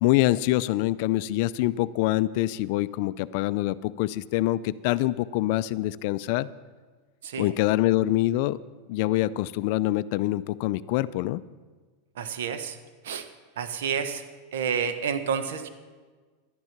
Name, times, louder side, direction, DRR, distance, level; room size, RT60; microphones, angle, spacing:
voice 1, 0.0-6.5 7.4-8.6 8.9-11.4, left 16 dB, 60° left, 17 dB, 0.4 m, -25 dB
voice 2, 12.2-12.8 13.0-13.3 13.6-14.2 14.5-15.7, right 7 dB, 80° right, 9 dB, 1.0 m, -29 dB
12.0 x 9.6 x 5.8 m, 1.4 s
supercardioid pair, 125°, 0 cm